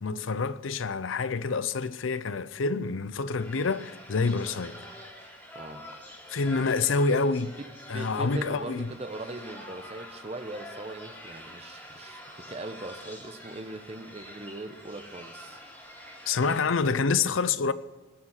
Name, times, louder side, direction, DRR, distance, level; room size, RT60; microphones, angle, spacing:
voice 1, 0.0-4.8 6.3-7.6 7.9-8.9 16.3-17.7, left 4 dB, 80° left, 0.6 m, -27 dB
sound 1, 3.4-16.6, equal, 10° left, 4.1 m, -46 dB
voice 2, 5.5-5.9 7.9-15.6, right 2 dB, 30° right, 1.0 m, -40 dB
20.0 x 7.3 x 5.7 m
head